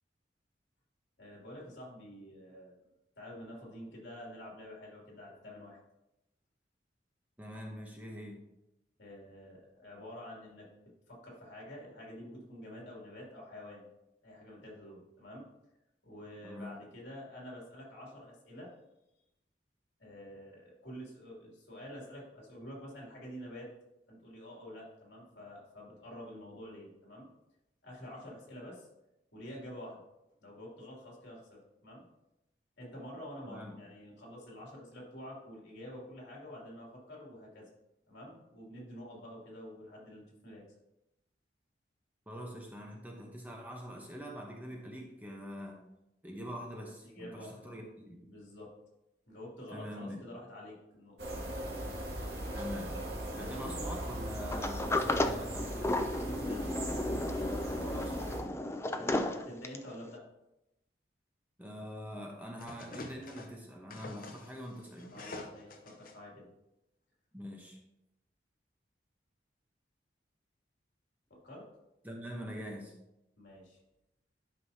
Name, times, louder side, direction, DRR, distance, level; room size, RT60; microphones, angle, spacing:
voice 1, 1.2-2.8 3.2-5.8 9.0-10.7 11.1-13.9 14.2-15.4 16.0-18.7 20.0-23.7 24.1-27.3 27.8-28.9 29.3-30.0 30.4-32.0 32.8-37.6 38.1-40.6 47.0-47.8 48.2-48.7 49.3-51.2 53.3-53.7 56.1-56.8 57.3-57.6 58.9-60.2 65.1-66.5 71.3-71.7 73.4-73.8, equal, 70° left, -3 dB, 2.8 m, -48 dB
voice 2, 7.4-8.4 16.4-16.8 33.4-33.8 42.3-45.8 46.2-48.3 49.7-50.2 52.5-53.0 53.3-56.0 57.8-58.3 61.6-65.1 67.3-67.8 72.0-72.9, equal, 10° right, 0 dB, 0.9 m, -44 dB
sound 1, 51.2-58.4, right 1 dB, 60° right, 1.8 m, -39 dB
Sliding door, 54.5-59.9, left 2 dB, 15° left, 0.4 m, -33 dB
sound 2, 62.6-63.5 63.9-66.1, left 2 dB, 45° left, 0.8 m, -47 dB
11.5 x 5.4 x 2.8 m, 0.90 s
head